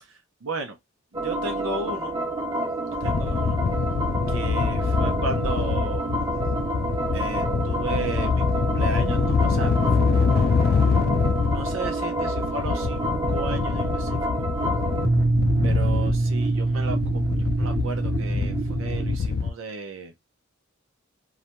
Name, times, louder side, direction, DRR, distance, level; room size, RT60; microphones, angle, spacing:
voice 1, 0.4-0.7 1.1-2.1 3.0-3.6 4.3-6.1 7.1-9.7 10.1-10.5 11.5-14.2 15.6-17.2 17.6-20.1, right 3 dB, 80° right, 0.7 m, -34 dB
sound 1, 1.1-19.2, right 2 dB, 20° right, 0.5 m, -27 dB
sound 2, 3.0-19.5, left 5 dB, 50° left, 0.3 m, -25 dB
2.4 x 2.2 x 2.9 m
head